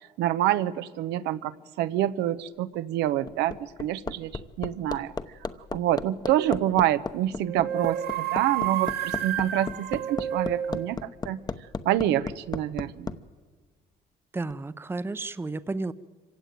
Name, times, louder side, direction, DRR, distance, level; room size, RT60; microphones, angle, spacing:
voice 1, 0.2-5.1 5.7-11.4 11.8-13.2, right 12 dB, 90° right, 13 dB, 0.9 m, -27 dB
Hammer, 3.0-13.2 14.5-14.6, left 4 dB, 25° left, 0.9 m, -34 dB
sound 1, 6.2-6.7 7.4-10.9, right 11 dB, 70° right, 1.9 m, -30 dB
voice 2, 14.3-15.9, right 3 dB, 15° right, 15 dB, 0.7 m, -32 dB
25.5 x 16.0 x 9.3 m, 1.5 s
cardioid pair, 110°, 17 cm